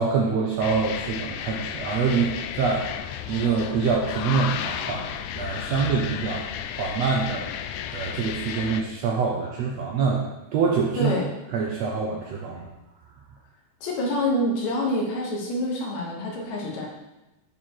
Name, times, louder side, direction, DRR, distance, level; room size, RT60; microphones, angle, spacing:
voice 1, 0.0-5.1 5.4-6.4 6.8-7.5 7.9-10.2 10.5-11.1 11.5-12.7, right 5 dB, 75° right, -1 dB, 1.6 m, -25 dB
sound 1, 0.6-8.8, left 9 dB, 80° left, 1.9 m, -33 dB
voice 2, 13.8-16.9, left 1 dB, 65° left, -1 dB, 2.3 m, -26 dB
9.2 x 4.4 x 4.6 m, 1.0 s
omnidirectional pair, 3.8 m